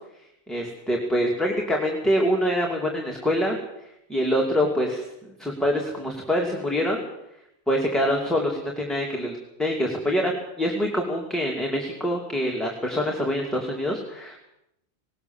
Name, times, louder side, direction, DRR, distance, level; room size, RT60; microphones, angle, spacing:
voice 1, 0.5-3.6 4.1-5.1 5.4-7.0 7.7-10.3 10.6-14.4, equal, ahead, -1 dB, 2.5 m, -25 dB
19.5 x 18.5 x 7.2 m, 0.83 s
omnidirectional pair, 1.1 m